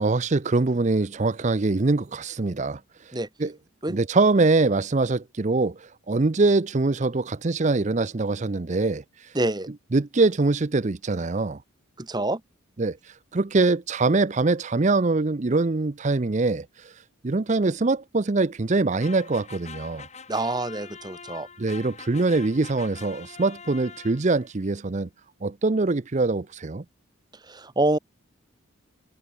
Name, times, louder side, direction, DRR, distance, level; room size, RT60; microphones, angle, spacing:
voice 1, 0.0-3.5 3.9-9.4 9.9-11.6 12.8-20.1 21.6-25.1 25.4-26.8, right 3 dB, 35° right, 0.6 m, -23 dB
voice 2, 9.3-9.7 12.0-12.4 20.3-21.5 27.5-28.0, right 2 dB, 20° right, 1.2 m, -26 dB
sound 1, 19.0-24.5, left 5 dB, 35° left, 6.3 m, -44 dB
head